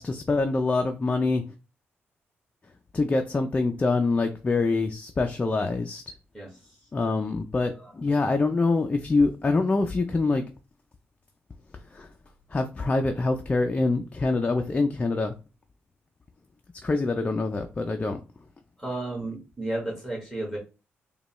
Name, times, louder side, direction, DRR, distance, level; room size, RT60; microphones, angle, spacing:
voice 1, 0.0-1.4 2.9-6.0 6.9-10.4 11.9-12.1 12.5-15.3 16.8-18.2, left 3 dB, 25° left, 5 dB, 0.4 m, -25 dB
voice 2, 18.8-20.6, right 2 dB, 5° right, -3 dB, 1.8 m, -33 dB
5.0 x 2.3 x 3.1 m, 0.31 s
cardioid pair, 105°, 5 cm